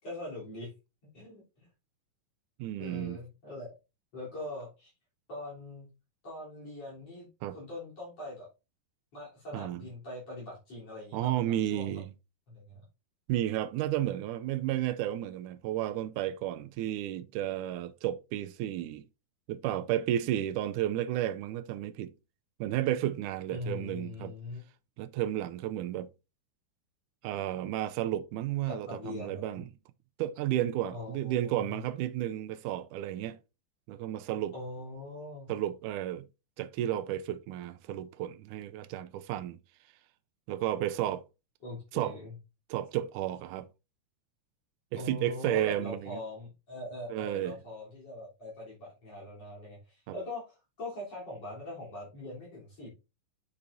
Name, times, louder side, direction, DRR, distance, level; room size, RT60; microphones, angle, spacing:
voice 1, 0.0-0.7 1.1-1.7 2.8-3.7 4.1-4.9 5.3-5.9 6.2-8.5 9.1-12.0 12.5-12.8 23.5-24.6 28.7-29.4 30.9-31.8 34.5-35.5 41.6-42.3 45.0-52.9, left 1 dB, 50° left, 4.8 m, -42 dB
voice 2, 2.6-3.2 7.4-7.6 9.5-9.8 11.1-12.1 13.3-19.0 19.5-22.1 22.6-24.3 25.0-26.1 27.2-29.7 30.2-33.4 33.9-34.5 35.5-36.3 36.6-39.6 40.5-41.2 41.9-42.1 42.7-43.7 44.9-46.2 47.1-47.6, right 12 dB, 75° right, 2.1 m, -32 dB
9.7 x 6.7 x 2.7 m
omnidirectional pair, 3.8 m